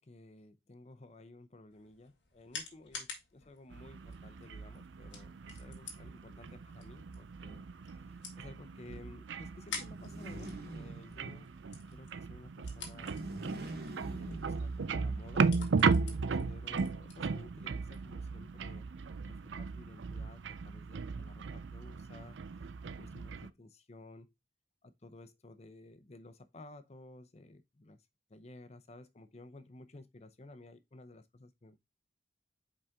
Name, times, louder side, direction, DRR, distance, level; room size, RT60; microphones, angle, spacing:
voice 1, 0.0-7.6 8.0-11.5 11.9-13.3 14.2-18.9 19.3-24.3 24.8-31.8, left 2 dB, 35° left, 0.7 m, -54 dB
sound 1, 1.7-18.1, left 5 dB, 85° left, 2.2 m, -51 dB
sound 2, 3.7-23.5, right 4 dB, 90° right, 0.5 m, -36 dB
sound 3, 9.8-11.5 12.9-15.0, right 2 dB, 60° right, 1.3 m, -45 dB
5.3 x 4.9 x 3.6 m
head